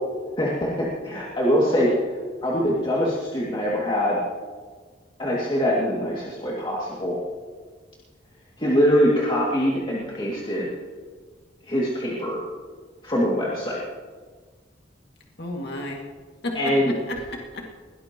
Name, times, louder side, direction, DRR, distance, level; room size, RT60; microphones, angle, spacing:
voice 1, 0.4-1.9 2.4-4.2 5.2-7.2 8.6-10.7 11.7-12.4 13.0-13.8 16.5-16.9, equal, 25° left, -5 dB, 2.4 m, -23 dB
voice 2, 15.4-16.0 16.4-17.7, left 1 dB, 60° left, -1 dB, 2.3 m, -33 dB
22.0 x 17.5 x 3.0 m, 1.5 s
head